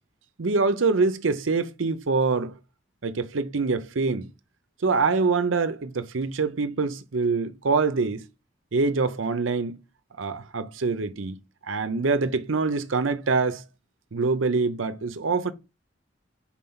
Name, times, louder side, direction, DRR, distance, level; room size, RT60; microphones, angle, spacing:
voice 1, 0.4-2.6 3.0-4.3 4.8-8.2 8.7-9.8 10.2-11.4 11.7-13.6 14.1-15.5, right 4 dB, 90° right, 0.7 m, -25 dB
4.4 x 4.4 x 5.5 m
head